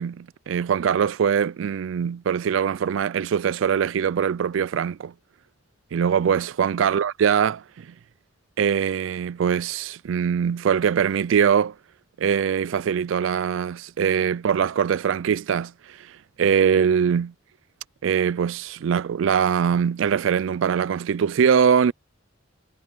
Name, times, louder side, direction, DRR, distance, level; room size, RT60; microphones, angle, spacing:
voice 1, 0.0-5.1 5.9-7.9 8.6-11.7 12.2-15.7 16.4-17.3 18.0-21.9, right 7 dB, 70° right, 0.3 m, -22 dB
head